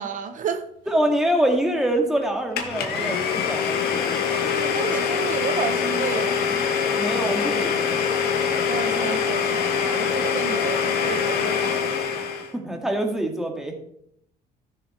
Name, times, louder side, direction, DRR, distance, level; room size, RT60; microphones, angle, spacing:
voice 1, 0.0-0.9 4.3-6.6 8.7-11.9, right 7 dB, 50° right, 8 dB, 0.9 m, -31 dB
voice 2, 0.9-4.4 7.0-8.2 12.5-13.7, right 1 dB, 5° right, 2 dB, 2.2 m, -25 dB
Domestic sounds home sounds, 2.6-12.5, left 6 dB, 70° left, 1.9 m, -24 dB
14.5 x 7.0 x 4.4 m, 0.71 s
cardioid pair, 110°, 17 cm